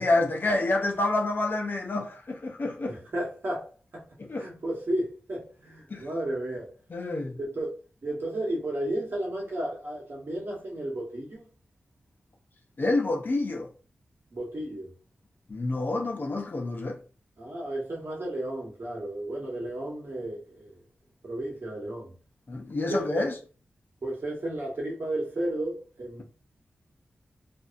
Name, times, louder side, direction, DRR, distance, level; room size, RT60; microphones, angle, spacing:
voice 1, 0.0-3.0 4.2-4.5 5.9-6.1 6.9-7.4 12.8-13.7 15.5-17.0 22.5-23.4, left 2 dB, 50° left, 0.7 m, -28 dB
voice 2, 2.8-4.0 4.4-6.7 7.4-7.7 8.0-11.5 14.3-14.9 17.4-20.8 21.2-22.1 22.9-23.2 24.0-26.2, right 1 dB, 60° right, 1.3 m, -33 dB
2.7 x 2.3 x 2.5 m
cardioid pair, 60°, 4 cm